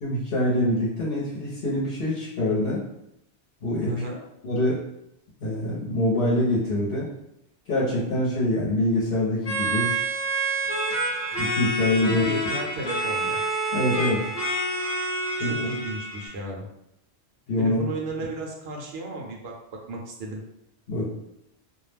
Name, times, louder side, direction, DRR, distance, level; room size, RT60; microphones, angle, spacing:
voice 1, 0.0-2.8 3.6-3.9 4.4-4.8 5.4-7.1 7.7-9.9 11.4-12.2 13.7-14.3 15.4-15.7 17.5-17.8 20.9-21.1, left 1 dB, 60° left, -7 dB, 0.8 m, -25 dB
voice 2, 3.8-4.2 12.0-13.4 15.4-16.7 17.6-19.6 19.9-20.4, right 2 dB, 70° right, -1 dB, 0.8 m, -34 dB
sound 1, 9.4-16.3, right 1 dB, 30° left, 0.5 m, -27 dB
2.3 x 2.0 x 3.2 m, 0.80 s
omnidirectional pair, 1.1 m